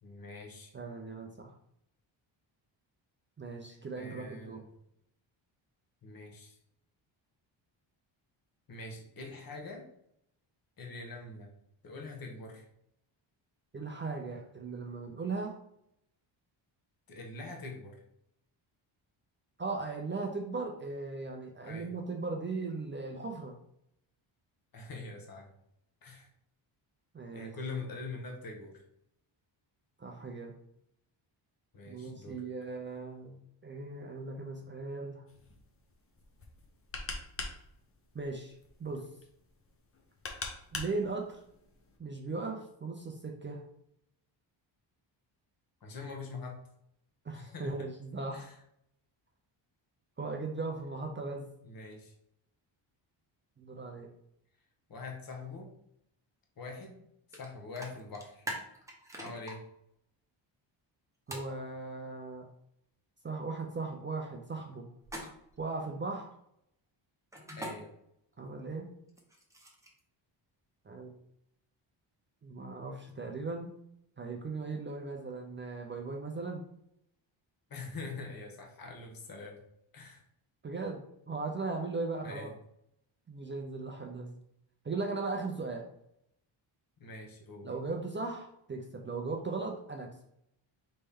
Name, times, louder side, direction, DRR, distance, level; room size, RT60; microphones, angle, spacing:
voice 1, 0.0-0.7 3.9-4.7 6.0-6.6 8.7-9.8 10.8-11.5 11.8-12.7 17.1-18.0 21.6-21.9 24.7-25.5 26.0-26.3 27.3-28.8 31.7-32.4 45.8-46.6 47.3-47.9 48.3-48.6 51.6-52.1 54.9-55.7 56.6-56.9 57.3-58.5 59.2-59.6 67.6-67.9 77.7-79.6 79.9-80.2 82.2-82.5 87.0-87.7, left 3 dB, 45° left, 1 dB, 1.2 m, -44 dB
voice 2, 0.7-1.5 3.4-4.6 13.7-15.6 19.6-23.6 27.1-27.5 30.0-30.6 31.9-35.3 38.1-39.1 40.7-41.4 42.0-43.6 47.2-48.5 50.2-51.5 53.6-54.1 61.3-62.5 63.2-64.9 65.6-66.3 68.4-68.9 70.9-71.2 72.4-73.7 74.2-76.6 80.6-82.5 83.3-84.4 84.8-85.9 87.6-90.1, right 3 dB, 25° right, 2 dB, 0.5 m, -38 dB
sound 1, 35.3-42.0, left 3 dB, 30° left, 0.7 m, -44 dB
sound 2, 57.3-57.5 57.8-59.5 61.3-61.5 65.0-65.6 67.3-67.7 69.1-70.0, right 1 dB, 5° right, 0.9 m, -41 dB
4.2 x 3.3 x 3.5 m, 0.75 s
cardioid pair, 125°, 48 cm